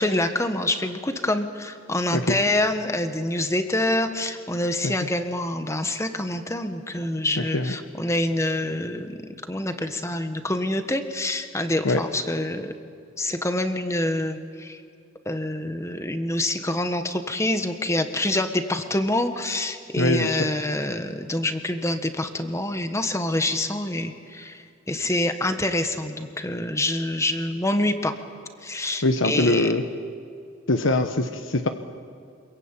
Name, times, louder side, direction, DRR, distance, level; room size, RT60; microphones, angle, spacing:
voice 1, 0.0-12.7 13.2-14.8 15.2-28.1 28.6-29.7, left 1 dB, 15° left, 8 dB, 1.5 m, -26 dB
voice 2, 20.0-20.4 29.0-29.8 30.7-31.7, left 2 dB, 65° left, 7 dB, 1.2 m, -22 dB
26.5 x 22.5 x 9.1 m, 2.4 s
head